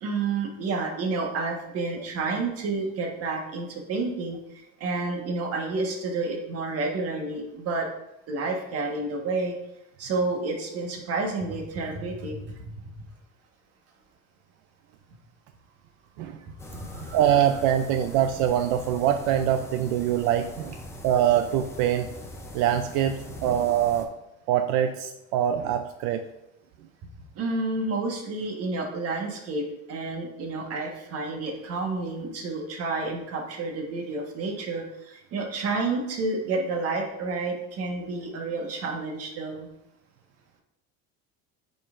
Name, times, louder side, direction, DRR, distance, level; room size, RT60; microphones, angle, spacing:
voice 1, 0.0-4.4 4.8-7.9 8.3-9.5 10.0-12.4 16.7-17.2 27.4-39.7, right 3 dB, 45° right, 2 dB, 1.4 m, -30 dB
sound 1, 16.6-24.1, left 1 dB, 10° left, 0.6 m, -42 dB
voice 2, 17.1-20.8 21.0-22.1 22.5-24.1 24.5-26.2, right 10 dB, 85° right, 7 dB, 0.5 m, -24 dB
8.7 x 5.4 x 2.5 m, 0.88 s
cardioid pair, 150°, 33 cm